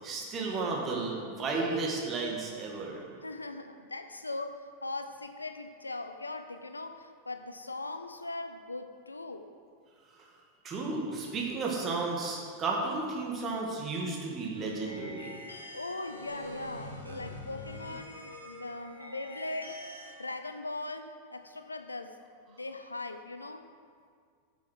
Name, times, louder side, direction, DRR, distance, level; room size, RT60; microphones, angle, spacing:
voice 1, 0.0-3.0 10.6-15.3, right 3 dB, 30° right, -1 dB, 2.1 m, -33 dB
voice 2, 3.2-9.5 15.7-19.8 20.2-22.2 22.5-23.7, left 2 dB, 80° left, 8 dB, 0.6 m, -40 dB
sound 1, 14.5-20.1, equal, 90° right, 1.5 m, -45 dB
7.6 x 7.3 x 6.5 m, 2.1 s
figure-of-eight pair, 90°, 0 cm